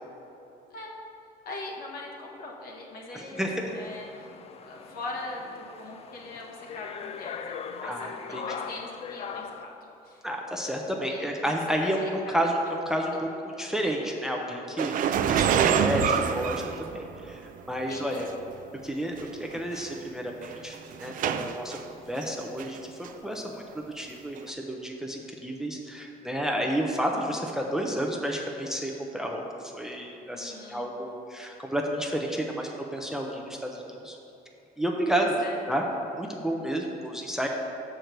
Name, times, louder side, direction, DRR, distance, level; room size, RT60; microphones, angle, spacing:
voice 1, 1.4-4.3 4.6-10.2 11.0-11.5 11.8-12.4 16.0-16.2 17.9-18.3 19.7-19.9 20.5-21.0 27.5-27.7 30.3-30.9 35.1-35.7, left 2 dB, 60° left, -1 dB, 1.4 m, -41 dB
voice 2, 3.1-3.8 7.8-8.4 10.2-13.3 13.6-18.3 18.8-34.2 34.8-35.3 35.7-35.8 36.1-37.5, equal, 5° right, 1 dB, 0.6 m, -31 dB
sound 1, 3.4-9.6, left 6 dB, 35° left, 0.4 m, -40 dB
sound 2, 14.8-17.4 18.2-18.3 19.2-19.3 19.5-19.8 20.4-21.8 22.2-22.8 23.0-23.1 24.4-24.5, right 8 dB, 55° right, 0.4 m, -26 dB
6.2 x 4.6 x 6.6 m, 2.9 s
cardioid pair, 110°, 17 cm